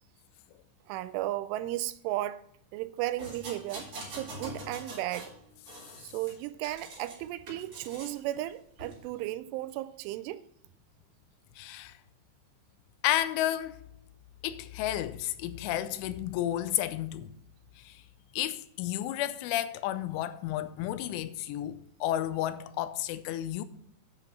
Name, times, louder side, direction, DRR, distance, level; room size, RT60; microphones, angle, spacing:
voice 1, 0.9-2.4 2.7-3.9 4.2-5.3 6.0-10.4, right 15 dB, 85° right, 3.1 m, -35 dB
sound 1, 3.2-5.3 5.7-7.2 7.5-8.2 8.8-9.0, right 1 dB, 30° right, 3.8 m, -43 dB
voice 2, 11.6-11.9 13.0-13.8 14.4-17.3 17.9-18.0 18.3-23.7, left 13 dB, 90° left, 3.1 m, -32 dB
9.5 x 5.9 x 5.4 m
omnidirectional pair, 5.5 m